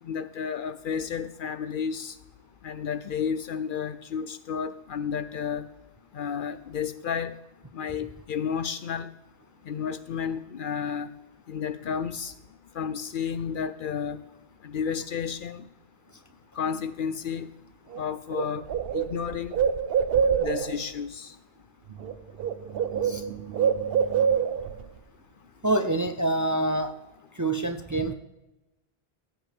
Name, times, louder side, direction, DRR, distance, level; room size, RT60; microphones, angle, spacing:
voice 1, 0.0-2.2 2.6-5.7 6.1-7.4 7.7-9.1 9.6-11.2 11.5-12.4 12.7-14.2 14.6-15.7 16.5-17.5 17.9-19.6 20.4-21.4 24.1-24.8, left 7 dB, 60° left, 13 dB, 0.6 m, -32 dB
Bird, 17.9-18.0 18.3-20.8 21.9-22.1 22.4-24.8, right 7 dB, 65° right, 0.8 m, -25 dB
voice 2, 25.6-26.9 27.4-28.1, right 2 dB, 20° right, 8 dB, 0.5 m, -26 dB
15.5 x 9.1 x 3.4 m, 0.99 s
omnidirectional pair, 1.1 m